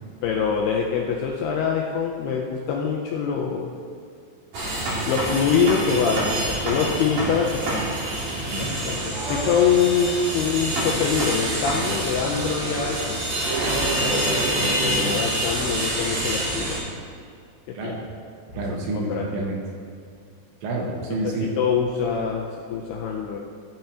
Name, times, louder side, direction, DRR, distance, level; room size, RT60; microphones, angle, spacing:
voice 1, 0.2-3.7 5.1-7.8 8.6-13.2 14.0-16.8 17.7-17.9 19.1-19.4 21.4-23.4, left 6 dB, 90° left, -1 dB, 2.3 m, -24 dB
sound 1, 4.5-16.8, right 1 dB, 50° right, 3.4 m, -26 dB
voice 2, 18.5-19.6 20.6-21.5, right 2 dB, 75° right, -2 dB, 3.5 m, -28 dB
16.0 x 6.8 x 3.0 m, 2.3 s
omnidirectional pair, 5.3 m